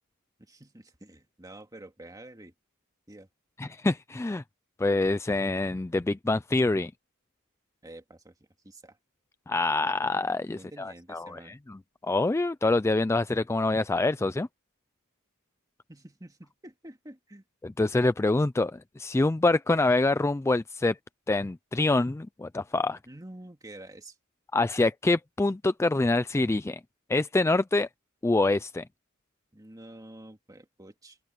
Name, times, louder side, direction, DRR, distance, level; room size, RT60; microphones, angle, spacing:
voice 1, 0.4-2.5 3.1-3.3 7.8-8.3 8.6-9.0 10.5-11.6 15.9-17.4 23.1-24.2 29.5-31.2, right 1 dB, 15° right, 2.2 m, -48 dB
voice 2, 3.6-4.4 4.8-6.9 9.5-14.5 17.6-21.0 21.3-23.0 24.5-26.8 27.1-27.9 28.2-28.8, left 2 dB, 10° left, 0.3 m, -26 dB
head